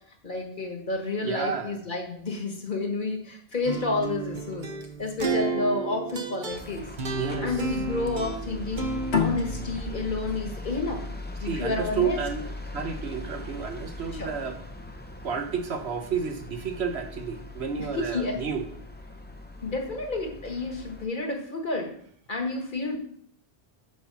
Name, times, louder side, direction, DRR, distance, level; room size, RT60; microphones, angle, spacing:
voice 1, 0.2-4.7 5.0-6.9 7.4-8.9 9.2-11.0 11.4-12.2 14.2-14.3 17.8-18.4 19.6-21.9 22.3-23.0, left 3 dB, 50° left, 2 dB, 1.6 m, -30 dB
voice 2, 1.2-1.7 7.1-7.7 11.4-14.6 15.2-18.6, right 6 dB, 80° right, 6 dB, 1.2 m, -31 dB
sound 1, 3.7-9.8, right 4 dB, 50° right, 1.0 m, -32 dB
sound 2, 6.5-21.1, left 2 dB, 10° left, 0.6 m, -40 dB
sound 3, 9.1-12.3, left 6 dB, 80° left, 1.3 m, -30 dB
5.7 x 5.3 x 6.8 m, 0.63 s
omnidirectional pair, 1.1 m